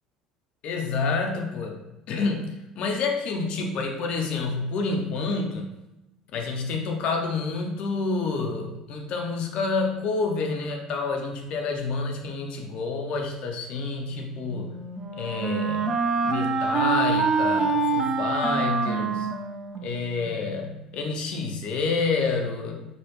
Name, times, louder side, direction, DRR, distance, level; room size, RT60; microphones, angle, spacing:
voice 1, 0.6-5.7 6.3-14.8 15.2-16.0 16.2-19.4 19.8-22.8, left 4 dB, 55° left, 2 dB, 0.4 m, -28 dB
Wind instrument woodwind instrument, 14.5-20.3, right 4 dB, 30° right, 0.5 m, -26 dB
3.1 x 2.2 x 3.0 m, 0.97 s
hypercardioid pair, 75°, 2 cm